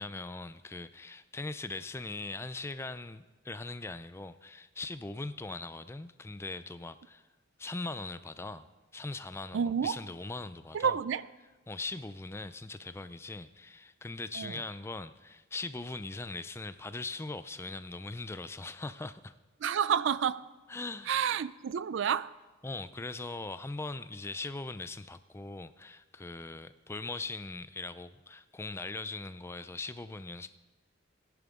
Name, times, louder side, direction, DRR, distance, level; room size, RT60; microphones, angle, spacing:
voice 1, 0.0-7.2 7.6-8.7 8.9-11.0 11.7-19.3 20.7-21.2 22.6-30.6, left 3 dB, 15° left, 0.3 m, -40 dB
voice 2, 9.5-10.0 10.7-11.3 14.3-14.6 19.6-20.5 21.1-22.3, right 7 dB, 65° right, 0.4 m, -29 dB
17.5 x 10.5 x 3.7 m
head